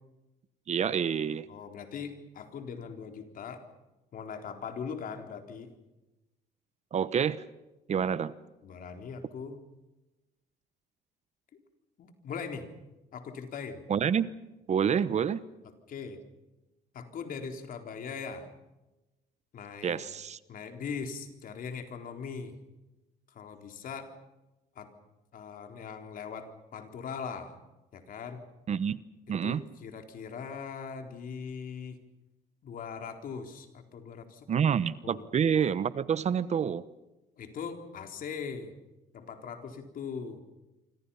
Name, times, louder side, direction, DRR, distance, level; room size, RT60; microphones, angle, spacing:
voice 1, 0.7-1.5 6.9-7.4 7.9-8.3 13.9-14.3 14.7-15.4 19.8-20.4 28.7-29.0 29.3-29.6 34.5-36.8, right 7 dB, 40° right, 16 dB, 1.0 m, -28 dB
voice 2, 1.5-3.6 4.1-5.7 8.6-9.6 12.0-12.7 13.1-13.8 15.6-16.2 16.9-18.5 19.5-20.0 20.5-22.5 23.3-24.1 24.8-24.9 25.3-27.5 27.9-28.4 29.4-32.0 32.6-34.7 35.0-35.3 37.4-38.7 39.1-40.4, left 6 dB, 55° left, 5 dB, 4.0 m, -40 dB
28.0 x 25.0 x 5.7 m, 1.0 s
cardioid pair, 110°, 17 cm